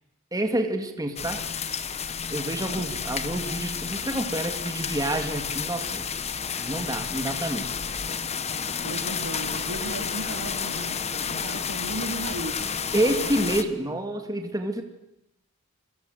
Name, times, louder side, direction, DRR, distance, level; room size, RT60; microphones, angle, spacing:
voice 1, 0.3-1.4 2.3-6.1 6.6-7.7 12.9-14.8, right 1 dB, 15° right, 5 dB, 2.2 m, -28 dB
sound 1, 1.2-13.6, left 6 dB, 30° left, 1.2 m, -31 dB
voice 2, 8.8-12.7 13.3-13.9, right 1 dB, 80° right, 6 dB, 3.3 m, -36 dB
28.0 x 22.5 x 7.9 m, 0.86 s
head